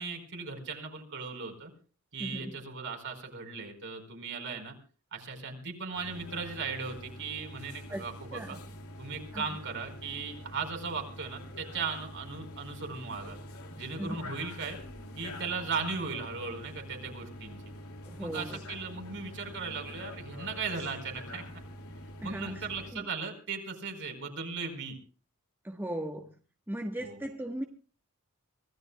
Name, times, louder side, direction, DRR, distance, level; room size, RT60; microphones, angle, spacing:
voice 1, 0.0-1.7 2.1-4.7 5.1-8.6 9.0-13.4 13.8-14.8 15.2-17.6 18.2-21.4 22.2-25.0 27.0-27.2, right 4 dB, 60° right, 4 dB, 4.7 m, -37 dB
voice 2, 2.2-2.6 7.9-8.0 8.3-8.6 9.3-9.4 14.0-14.2 18.0-18.6 22.2-23.1 25.6-26.3 26.7-27.6, right 1 dB, 10° right, 3 dB, 1.3 m, -38 dB
sound 1, 5.9-22.9, left 1 dB, 80° left, 2.6 m, -45 dB
25.5 x 16.5 x 2.3 m, 0.38 s
head